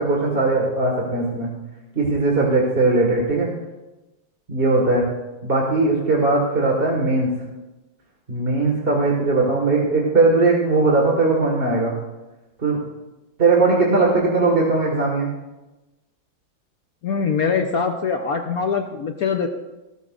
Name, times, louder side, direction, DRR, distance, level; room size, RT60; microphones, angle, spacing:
voice 1, 0.0-1.5 2.0-3.5 4.5-5.1 5.4-7.3 8.3-11.9 12.6-12.8 13.4-15.3, right 3 dB, 30° right, -1 dB, 1.8 m, -19 dB
voice 2, 17.0-19.5, left 5 dB, 60° left, 5 dB, 1.1 m, -23 dB
18.0 x 13.5 x 2.5 m, 1.0 s
omnidirectional pair, 2.1 m